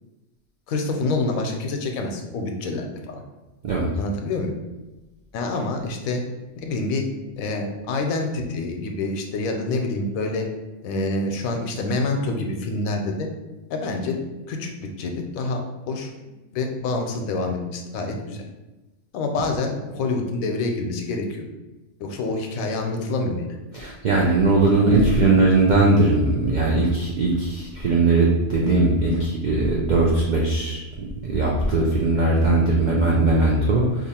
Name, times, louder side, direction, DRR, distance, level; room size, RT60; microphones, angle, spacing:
voice 1, 0.7-3.2 4.0-4.5 5.3-6.2 6.6-7.1 7.4-10.5 10.8-13.3 13.7-14.2 14.5-18.4 19.1-21.4 22.0-23.4 31.6-31.8, left 3 dB, 85° left, 3 dB, 1.0 m, -27 dB
voice 2, 23.8-34.1, right 2 dB, 75° right, -3 dB, 0.4 m, -19 dB
2.9 x 2.4 x 4.2 m, 1.1 s
omnidirectional pair, 1.4 m